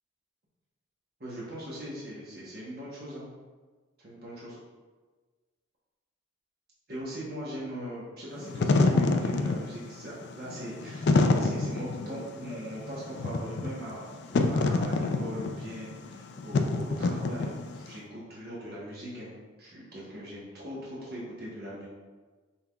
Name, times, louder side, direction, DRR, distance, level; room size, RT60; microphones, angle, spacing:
voice 1, 1.2-3.2 4.0-4.6 6.9-21.9, equal, 50° right, -7 dB, 1.0 m, -40 dB
Wind / Fire, 8.4-17.9, left 3 dB, 55° left, 0.3 m, -27 dB
5.5 x 3.4 x 2.3 m, 1.4 s
head